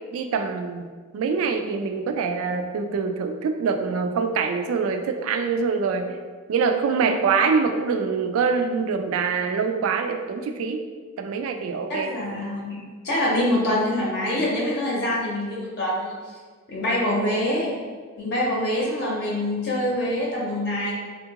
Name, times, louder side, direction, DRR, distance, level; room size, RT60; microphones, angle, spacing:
voice 1, 0.1-0.9 1.1-6.2 6.5-10.8 11.2-12.1, right 5 dB, 80° right, 7 dB, 0.3 m, -24 dB
voice 2, 11.9-16.1 16.7-17.7 18.2-20.9, left 1 dB, 55° left, -4 dB, 0.7 m, -25 dB
3.5 x 2.3 x 2.8 m, 1.5 s
head